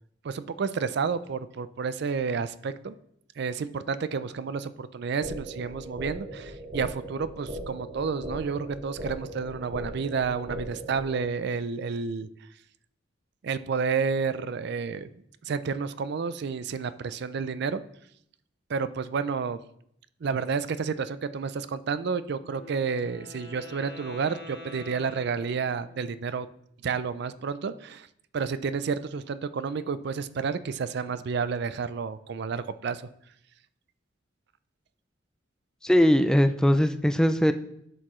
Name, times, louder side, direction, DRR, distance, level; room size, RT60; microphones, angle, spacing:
voice 1, 0.2-3.0 3.4-12.3 13.4-15.1 15.4-17.8 18.7-19.6 20.2-26.5 26.8-28.1 28.3-33.1, right 5 dB, 60° right, 14 dB, 0.4 m, -30 dB
sound 1, 5.2-11.2, right 1 dB, 40° right, 1.0 m, -39 dB
Wind instrument woodwind instrument, 22.5-26.1, left 1 dB, 80° left, 1.9 m, -46 dB
voice 2, 35.8-37.5, equal, 5° left, 9 dB, 0.3 m, -20 dB
11.0 x 6.6 x 3.1 m, 0.72 s
head